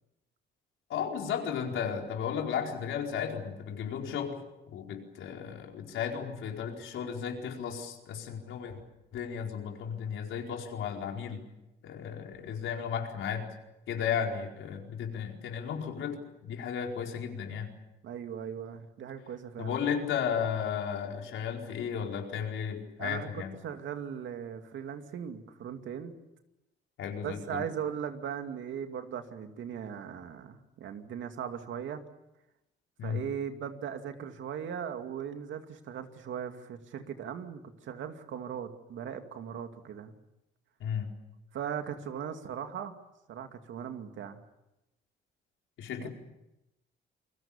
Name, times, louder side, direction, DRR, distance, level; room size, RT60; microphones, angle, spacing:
voice 1, 0.9-4.4 4.7-8.8 9.1-11.4 11.8-13.5 13.9-17.7 19.6-23.6 27.0-27.6 33.0-33.2 40.8-41.1 45.8-46.1, left 7 dB, 80° left, 1 dB, 4.6 m, -34 dB
voice 2, 18.0-19.8 23.0-26.1 27.2-32.0 33.0-40.1 41.5-42.9 43.3-44.4 46.0-46.1, right 8 dB, 75° right, 6 dB, 2.5 m, -38 dB
28.5 x 21.0 x 7.2 m, 0.94 s
cardioid pair, 90°, 20 cm